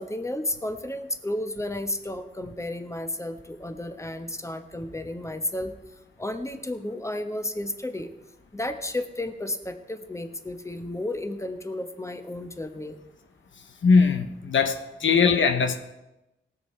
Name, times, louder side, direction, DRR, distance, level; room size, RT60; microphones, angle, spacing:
voice 1, 0.0-5.7 6.2-8.1 8.5-13.0, left 1 dB, 15° left, 7 dB, 1.2 m, -32 dB
voice 2, 13.8-15.8, left 5 dB, 75° left, 7 dB, 0.9 m, -20 dB
18.5 x 6.7 x 4.4 m, 0.97 s
cardioid pair, 50°, 20 cm